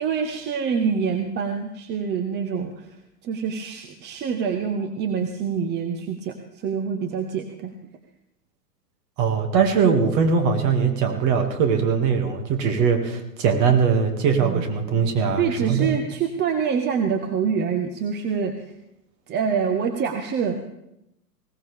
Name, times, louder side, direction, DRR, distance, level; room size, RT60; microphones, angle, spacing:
voice 1, 0.0-2.9 3.2-7.7 14.4-14.6 15.4-18.5 19.3-20.7, right 6 dB, 20° right, 6 dB, 1.0 m, -26 dB
voice 2, 9.2-15.9, right 6 dB, 35° right, 5 dB, 2.3 m, -21 dB
20.0 x 18.0 x 3.6 m, 0.83 s
figure-of-eight pair, 105°, 49 cm